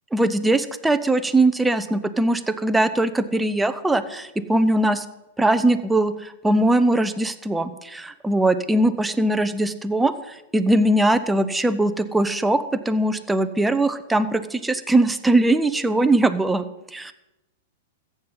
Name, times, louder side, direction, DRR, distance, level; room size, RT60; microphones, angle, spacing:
voice 1, 0.1-5.0 5.4-16.6 16.9-17.1, right 2 dB, 5° right, 11 dB, 0.8 m, -21 dB
14.5 x 8.1 x 5.7 m, 0.97 s
hypercardioid pair, 110°, 0 cm